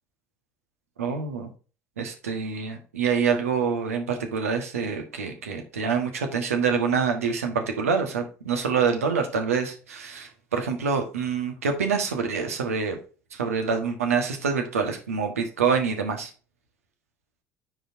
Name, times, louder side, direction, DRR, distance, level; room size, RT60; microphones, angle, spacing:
voice 1, 1.0-1.5 2.0-13.0 13.3-16.3, right 5 dB, 80° right, 5 dB, 1.5 m, -26 dB
9.5 x 5.0 x 2.7 m, 0.36 s
figure-of-eight pair, 60°, 8 cm